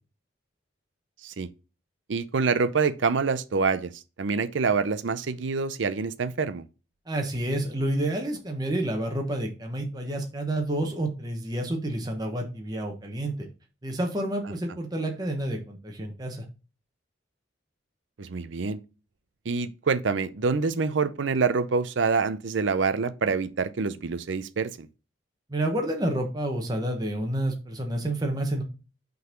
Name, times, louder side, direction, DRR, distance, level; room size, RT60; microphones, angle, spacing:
voice 1, 2.1-6.7 18.2-18.8 19.5-24.9, right 4 dB, 75° right, 0.6 m, -26 dB
voice 2, 7.1-13.5 13.8-16.4 25.5-28.6, right 1 dB, 20° right, 1.1 m, -29 dB
5.5 x 4.0 x 5.1 m
head